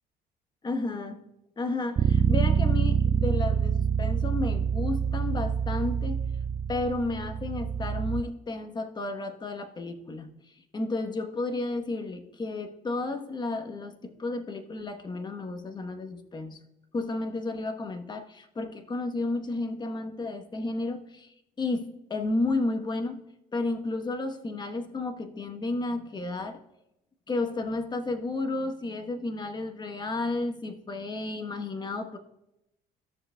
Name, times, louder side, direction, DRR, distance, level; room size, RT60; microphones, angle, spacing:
voice 1, 0.6-1.2 1.6-6.2 6.7-16.6 16.9-23.2 23.5-26.6 27.3-32.2, left 2 dB, 25° left, 7 dB, 1.0 m, -32 dB
Bass guitar, 2.0-8.2, right 7 dB, 30° right, 0.3 m, -26 dB
13.5 x 6.6 x 2.3 m, 0.86 s
cardioid pair, 110°, 17 cm